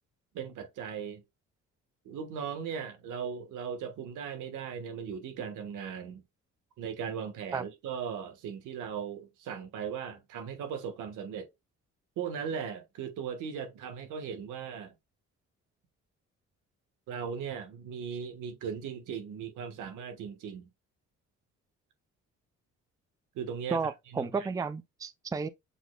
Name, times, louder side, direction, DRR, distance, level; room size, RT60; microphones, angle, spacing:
voice 1, 0.3-1.2 2.0-6.2 6.8-11.5 12.2-14.9 17.1-20.7 23.3-24.5, right 7 dB, 90° right, 1.3 m, -38 dB
voice 2, 23.7-25.5, right 4 dB, 10° right, 0.4 m, -32 dB
7.2 x 3.1 x 2.2 m
cardioid pair, 90°, 30 cm